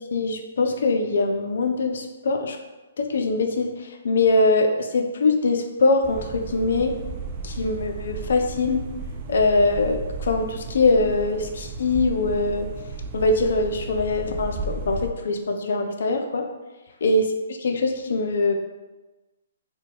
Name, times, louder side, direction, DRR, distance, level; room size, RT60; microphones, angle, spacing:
voice 1, 0.1-2.6 3.0-3.7 4.0-6.9 7.4-8.8 9.3-12.7 13.1-16.5 17.0-18.5, left 3 dB, 65° left, 4 dB, 0.4 m, -22 dB
sound 1, 6.0-15.1, right 3 dB, 35° right, 0.3 m, -34 dB
2.7 x 2.2 x 3.6 m, 1.2 s
hypercardioid pair, 135°, 0 cm